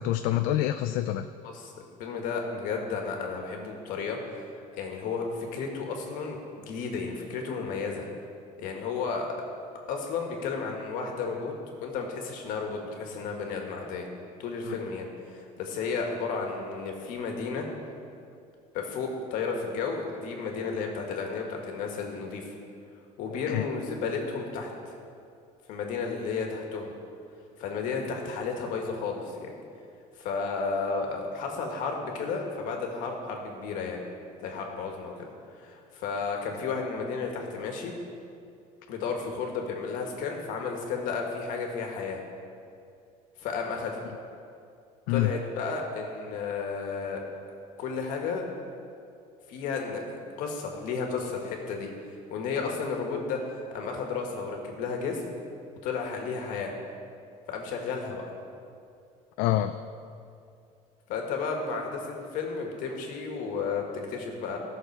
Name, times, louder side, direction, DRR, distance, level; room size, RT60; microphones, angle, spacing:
voice 1, 0.0-1.3 14.7-14.8 23.5-23.6 45.1-45.3 59.4-59.8, left 13 dB, 75° left, 9 dB, 0.4 m, -26 dB
voice 2, 1.4-1.7 2.0-4.5 4.7-8.0 8.6-9.3 9.9-11.5 11.8-14.0 14.4-15.1 15.3-17.7 18.7-22.5 23.2-24.9 25.7-26.9 27.6-29.5 30.2-34.0 34.4-37.9 38.9-42.2 43.4-44.1 45.1-47.2 47.8-48.4 49.5-51.9 52.3-55.3 55.8-56.7 57.5-58.2 61.1-64.6, left 5 dB, 60° left, 2 dB, 1.7 m, -33 dB
16.0 x 6.4 x 4.7 m, 2.5 s
cardioid pair, 175°, 15 cm